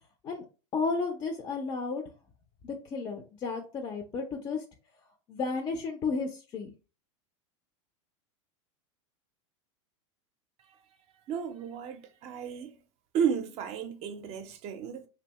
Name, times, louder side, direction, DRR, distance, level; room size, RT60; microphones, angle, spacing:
voice 1, 0.7-2.1 2.6-4.6 5.3-6.7, left 4 dB, 30° left, 0.4 m, -33 dB
voice 2, 11.3-12.8 13.1-15.1, right 7 dB, 40° right, 0.5 m, -33 dB
2.6 x 2.1 x 2.9 m
hypercardioid pair, 100°, 16 cm